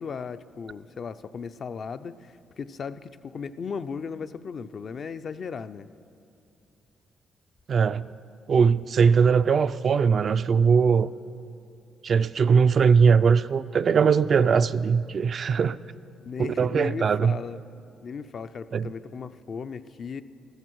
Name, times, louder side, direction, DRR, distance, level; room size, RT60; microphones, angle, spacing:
voice 1, 0.0-5.9 16.2-17.6 18.0-20.2, left 5 dB, 50° left, 11 dB, 0.4 m, -36 dB
voice 2, 7.7-8.1 8.5-11.1 12.0-15.8 16.4-17.4 18.7-18.9, right 6 dB, 50° right, 13 dB, 0.3 m, -20 dB
14.5 x 14.0 x 4.6 m, 2.5 s
cardioid pair, 90°, 0 cm